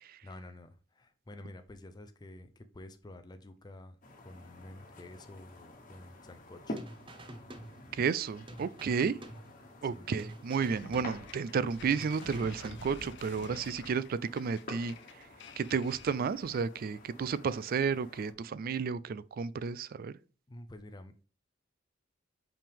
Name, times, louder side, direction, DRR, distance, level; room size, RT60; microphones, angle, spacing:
voice 1, 0.2-6.8 9.9-10.2 20.5-21.1, left 1 dB, 20° left, 0.5 m, -50 dB
sound 1, 4.0-18.3, left 1 dB, 45° left, 1.3 m, -50 dB
sound 2, 6.8-8.2 8.5-9.9 10.2-11.6 11.9-13.2, right 1 dB, 25° right, 0.8 m, -49 dB
voice 2, 7.9-9.2 9.8-14.9 15.6-20.1, right 6 dB, 50° right, 0.3 m, -32 dB
sound 3, 10.5-16.8, left 4 dB, 65° left, 0.8 m, -50 dB
5.6 x 5.3 x 3.5 m
head